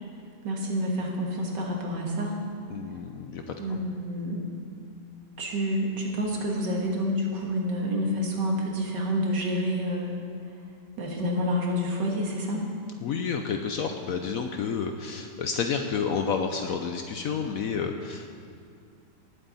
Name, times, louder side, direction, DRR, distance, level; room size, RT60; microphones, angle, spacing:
voice 1, 0.4-2.3 3.6-4.5 5.4-10.1 11.0-12.6, equal, 75° right, -1 dB, 2.2 m, -28 dB
voice 2, 2.7-3.8 13.0-18.4, left 6 dB, 70° left, 5 dB, 0.9 m, -30 dB
18.5 x 8.0 x 4.1 m, 2.2 s
omnidirectional pair, 1.9 m